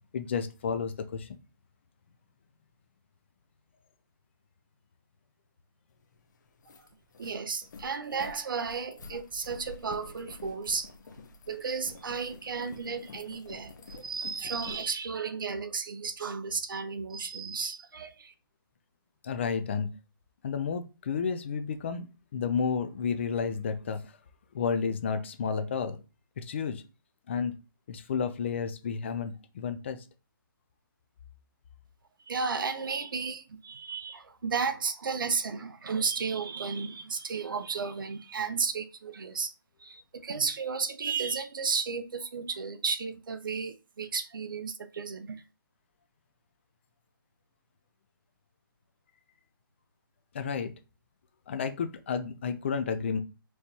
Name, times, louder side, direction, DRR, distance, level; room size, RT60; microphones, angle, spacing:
voice 1, 0.1-1.3 19.2-19.9 20.4-24.1 24.5-26.0 26.4-26.8 27.3-27.5 27.9-30.0 50.3-50.7 51.5-53.2, left 6 dB, 30° left, 0.4 m, -31 dB
sound 1, 6.0-6.1 6.4-14.9, left 4 dB, 50° left, 0.8 m, -48 dB
voice 2, 7.2-10.9 11.5-18.3 32.3-39.5 39.8-45.4, right 5 dB, 65° right, 0.7 m, -33 dB
4.5 x 3.2 x 2.8 m
hypercardioid pair, 160°, 12 cm